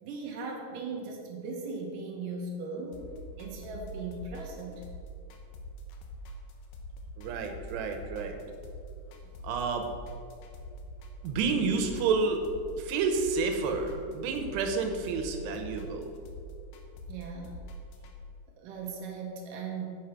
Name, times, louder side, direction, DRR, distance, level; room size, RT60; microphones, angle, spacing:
voice 1, 0.0-3.0 3.4-4.8 17.1-17.7 18.6-19.8, right 4 dB, 70° right, 1 dB, 2.1 m, -38 dB
sound 1, 2.9-18.2, right 1 dB, 75° left, 2.6 m, -45 dB
voice 2, 7.2-8.4 9.4-9.9 11.2-12.4 12.8-16.1, right 4 dB, 85° right, 5 dB, 2.9 m, -30 dB
7.4 x 6.3 x 5.9 m, 2.3 s
omnidirectional pair, 4.7 m